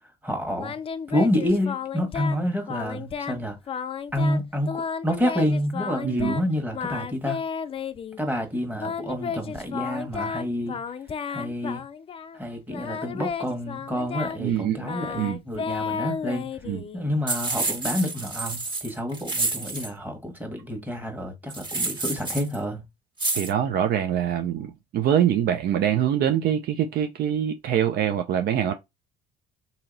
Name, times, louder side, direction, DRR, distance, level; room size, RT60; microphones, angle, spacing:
voice 1, 0.2-0.7 1.1-3.6 4.1-7.4 8.2-10.8 11.3-11.8 12.3-16.5 16.9-22.8, equal, 10° right, 1.5 m, -28 dB
Singing, 0.6-2.4 2.7-3.4 3.7-4.4 4.7-6.4 6.7-8.2 8.8-12.4 12.7-17.1, left 6 dB, 30° left, 0.4 m, -33 dB
voice 2, 6.0-6.4 14.4-14.9 15.2-15.4 16.6-16.8 23.3-28.7, right 10 dB, 55° right, 0.5 m, -24 dB
sound 1, 17.3-19.9 21.5-22.5 23.2-23.5, right 3 dB, 25° right, 1.5 m, -29 dB
2.8 x 2.7 x 4.0 m
hypercardioid pair, 70°, 19 cm